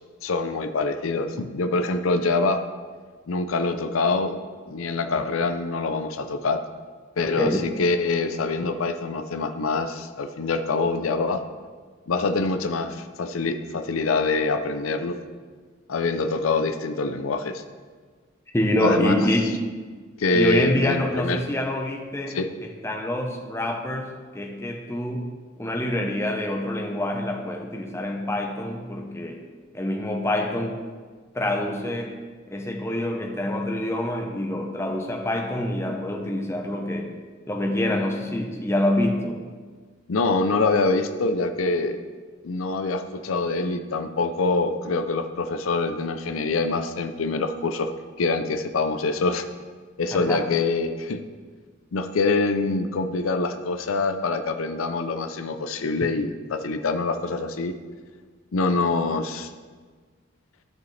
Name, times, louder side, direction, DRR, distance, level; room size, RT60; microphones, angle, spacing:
voice 1, 0.2-2.6 3.3-4.4 4.7-6.6 7.2-11.4 12.1-15.2 15.9-17.6 18.8-19.2 20.2-21.4 22.3-22.5 40.1-42.0 42.4-47.9 48.2-49.5 50.0-51.2 51.9-57.8 58.5-59.5, left 3 dB, 90° left, 9 dB, 0.6 m, -25 dB
voice 2, 18.5-19.5 20.3-25.2 25.6-29.4 29.7-30.8 31.3-32.2 32.5-37.1 37.5-39.4 50.1-50.4, left 1 dB, 15° left, 2 dB, 0.8 m, -26 dB
12.5 x 6.7 x 3.3 m, 1.5 s
head